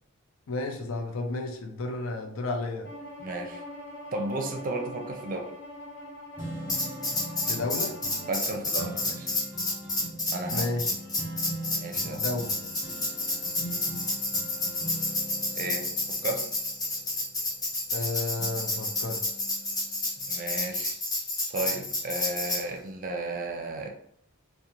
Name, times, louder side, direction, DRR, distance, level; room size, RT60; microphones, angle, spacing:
voice 1, 0.5-2.9 7.5-8.0 10.5-10.9 12.0-12.5 17.9-19.2, left 2 dB, 80° left, 4 dB, 0.5 m, -32 dB
Bowed string instrument, 2.8-8.5, left 1 dB, 60° left, 0.8 m, -43 dB
voice 2, 3.2-3.6 4.1-5.5 8.3-9.3 10.3-10.7 11.7-12.2 15.5-15.9 16.2-16.5 20.3-20.9 21.5-23.9, right 2 dB, 45° right, 3 dB, 0.5 m, -33 dB
sound 1, 6.4-18.0 18.4-20.3 20.8-20.9, right 1 dB, 10° right, 0.8 m, -41 dB
Tambourine, 6.7-22.6, left 2 dB, 20° left, 0.8 m, -30 dB
2.5 x 2.1 x 2.9 m, 0.70 s
head